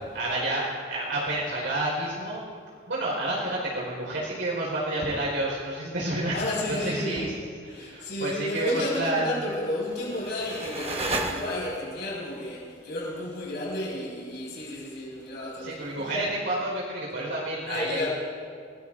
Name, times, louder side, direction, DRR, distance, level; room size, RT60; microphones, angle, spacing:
voice 1, 0.1-2.4 2.9-6.4 6.7-7.3 7.6-9.5 15.6-18.1, right 1 dB, 65° right, -4 dB, 4.5 m, -29 dB
voice 2, 6.3-7.3 7.7-16.1 17.7-18.1, left 1 dB, 60° left, -5 dB, 5.4 m, -32 dB
sound 1, 9.6-12.0, right 2 dB, 30° right, 1.2 m, -33 dB
24.0 x 19.5 x 2.6 m, 2.1 s
head